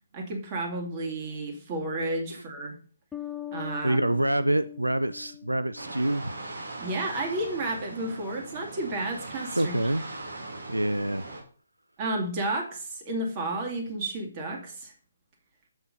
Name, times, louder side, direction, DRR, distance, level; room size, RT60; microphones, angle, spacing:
voice 1, 0.1-2.8 3.5-4.0 6.8-9.7 12.0-14.9, right 2 dB, 30° right, 2 dB, 2.3 m, -32 dB
sound 1, 3.1-6.5, left 12 dB, 5° left, 0.6 m, -41 dB
voice 2, 3.8-6.3 9.6-10.0 10.7-11.3, right 1 dB, 85° right, 13 dB, 0.4 m, -26 dB
sound 2, 5.8-11.4, right 2 dB, 70° right, 2.6 m, -40 dB
7.3 x 6.0 x 5.3 m, 0.44 s
figure-of-eight pair, 140°, 0 cm